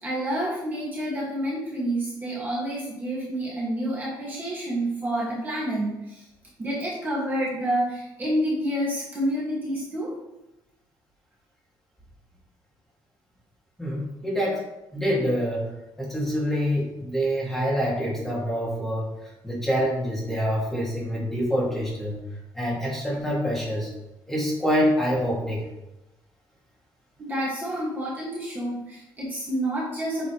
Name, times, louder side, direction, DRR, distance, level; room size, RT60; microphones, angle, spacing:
voice 1, 0.0-6.2 6.6-10.1 27.2-30.3, right 1 dB, 25° right, -6 dB, 2.0 m, -28 dB
voice 2, 13.8-14.6 14.9-15.7 16.0-19.1 19.4-22.2 22.5-23.9 24.3-25.6, equal, 5° left, -6 dB, 2.4 m, -26 dB
8.1 x 6.1 x 3.1 m, 0.93 s
cardioid pair, 155°, 8 cm